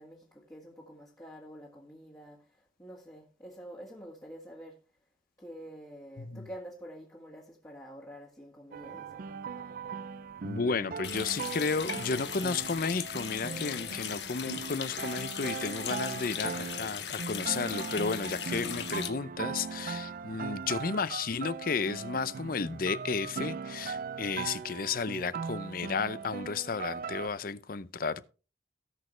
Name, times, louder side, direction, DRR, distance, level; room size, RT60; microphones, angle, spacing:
voice 1, 0.0-4.8 5.4-9.2, equal, 20° left, 1.9 m, -48 dB
sound 1, 8.7-27.3, right 5 dB, 50° right, 0.4 m, -39 dB
voice 2, 10.4-28.3, left 4 dB, 55° left, 0.6 m, -33 dB
Water tap faucet, 11.0-19.1, left 8 dB, 70° left, 1.3 m, -38 dB
18.0 x 6.5 x 3.2 m
head